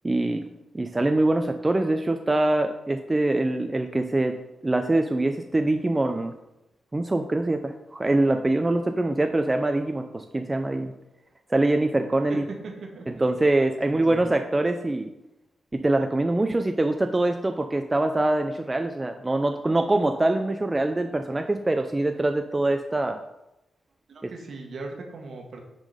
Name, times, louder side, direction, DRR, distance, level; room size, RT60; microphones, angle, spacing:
voice 1, 0.0-0.4 0.7-4.3 4.6-6.3 6.9-10.9 11.5-12.4 13.2-15.1 15.7-23.2, right 2 dB, 25° right, 6 dB, 0.4 m, -24 dB
voice 2, 12.3-13.2 13.9-14.2 24.1-25.6, right 3 dB, 65° right, 2 dB, 1.4 m, -38 dB
6.3 x 3.8 x 5.0 m, 0.92 s
cardioid pair, 60°, 0 cm